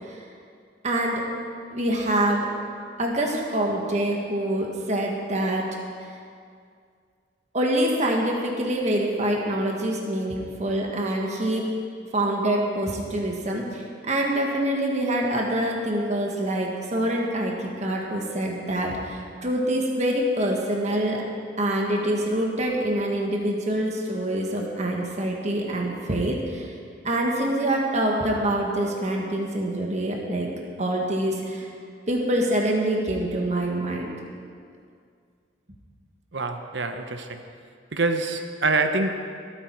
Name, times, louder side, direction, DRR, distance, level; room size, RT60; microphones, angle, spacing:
voice 1, 0.8-1.2 1.7-2.5 3.0-5.6 6.0-6.1 7.5-11.7 12.1-21.2 21.6-26.7 27.0-30.5 30.8-31.7 32.1-34.1, right 1 dB, 40° right, 0 dB, 1.5 m, -25 dB
voice 2, 36.3-37.4 37.9-39.2, right 3 dB, 75° right, 7 dB, 0.9 m, -25 dB
22.5 x 9.0 x 4.6 m, 2.2 s
head